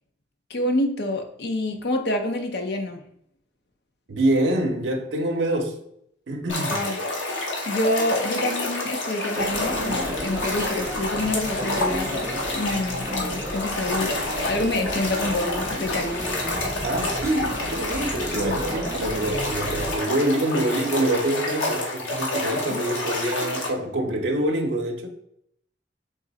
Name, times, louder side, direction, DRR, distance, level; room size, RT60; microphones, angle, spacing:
voice 1, 0.5-3.0 6.7-7.0 7.7-14.1 14.4-16.2 18.3-18.6 22.7-22.8, left 1 dB, 55° left, 0.6 m, -27 dB
voice 2, 4.1-5.8 6.3-6.8 16.8-25.1, right 1 dB, 70° right, 0.6 m, -25 dB
sound 1, 6.5-23.7, left 2 dB, 80° left, 1.0 m, -29 dB
sound 2, 9.4-19.9, right 1 dB, 15° right, 0.4 m, -33 dB
3.8 x 3.0 x 3.9 m
head